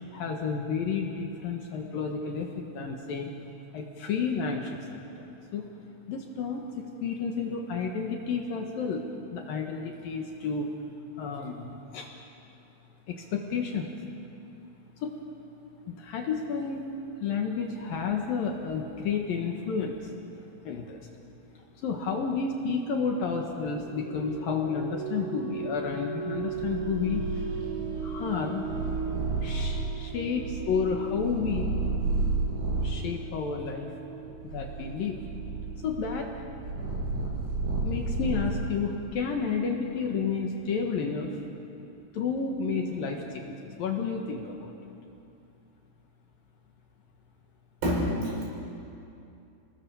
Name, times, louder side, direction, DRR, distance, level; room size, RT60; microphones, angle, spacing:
voice 1, 0.1-3.3 3.7-5.3 5.5-5.7 6.1-10.7 11.2-12.1 13.1-13.9 15.0-15.2 15.9-16.9 17.2-20.1 20.6-21.1 21.8-27.3 28.0-28.7 29.1-31.7 32.8-33.9 34.4-35.2 35.8-36.3 37.8-41.4 42.1-44.7, left 5 dB, 60° left, 2 dB, 2.6 m, -31 dB
sound 1, 23.5-36.0, right 5 dB, 40° right, 2.1 m, -39 dB
Purr, 26.5-33.0 33.7-38.9, right 3 dB, 75° right, 10.5 m, -32 dB
voice 2, 47.8-48.4, equal, 55° right, -3 dB, 7.8 m, -27 dB
30.0 x 20.5 x 7.0 m, 2.7 s
omnidirectional pair, 5.6 m